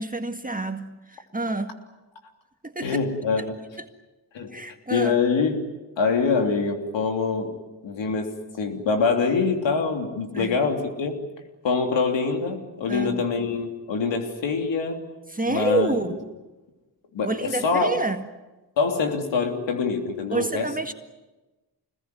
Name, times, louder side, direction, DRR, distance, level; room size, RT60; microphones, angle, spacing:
voice 1, 0.0-1.8 2.6-3.0 3.8-3.9 4.5-5.2 10.3-10.6 12.9-13.2 15.3-16.1 17.2-18.3 20.3-20.9, right 2 dB, 20° right, 7 dB, 1.9 m, -28 dB
voice 2, 2.8-3.6 4.3-4.5 4.9-5.6 6.0-7.6 7.8-11.2 11.6-15.0 15.5-16.0 17.1-17.9 18.8-20.7, left 4 dB, 85° left, 4 dB, 3.3 m, -24 dB
25.5 x 20.5 x 9.5 m, 1.1 s
cardioid pair, 50°, 44 cm